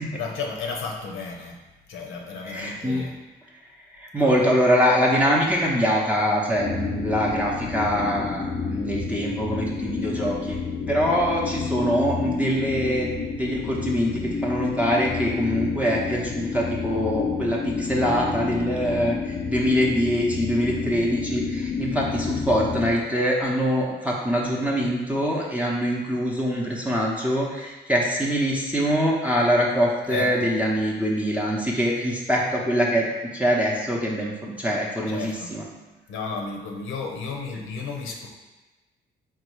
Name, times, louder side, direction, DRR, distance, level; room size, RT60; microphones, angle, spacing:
voice 1, 0.0-1.6 1.9-3.1 4.2-4.3 30.1-30.3 35.1-35.5 36.1-38.3, left 4 dB, 85° left, 1 dB, 0.7 m, -33 dB
voice 2, 2.4-3.1 4.0-10.6 10.9-33.1 33.3-35.7, equal, 5° right, -4 dB, 0.6 m, -24 dB
sound 1, 6.6-22.9, left 5 dB, 40° left, 0.5 m, -30 dB
4.0 x 2.3 x 4.6 m, 1.2 s
cardioid pair, 90°, 20 cm